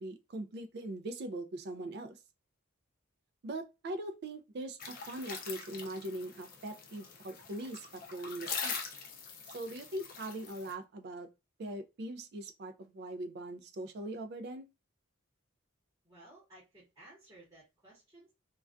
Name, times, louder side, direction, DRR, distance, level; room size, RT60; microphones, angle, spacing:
voice 1, 0.0-2.2 3.4-8.8 9.5-11.3 11.6-14.7, right 1 dB, 50° right, 0.3 m, -41 dB
sound 1, 4.8-10.7, left 5 dB, 45° left, 0.5 m, -43 dB
voice 2, 16.0-18.3, right 1 dB, 15° right, 0.9 m, -57 dB
2.2 x 2.2 x 2.4 m
head